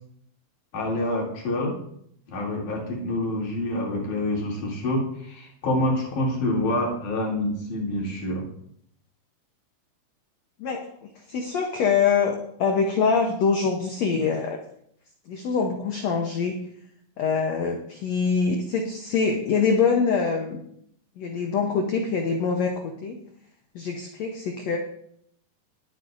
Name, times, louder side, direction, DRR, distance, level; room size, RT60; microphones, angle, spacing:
voice 1, 0.7-1.7 2.3-8.5, left 1 dB, 55° left, -3 dB, 4.2 m, -27 dB
voice 2, 10.6-14.6 15.3-16.6 17.2-20.6 21.2-23.2 23.7-24.8, left 5 dB, 85° left, 3 dB, 1.5 m, -24 dB
21.0 x 9.0 x 2.6 m, 0.71 s
omnidirectional pair, 4.5 m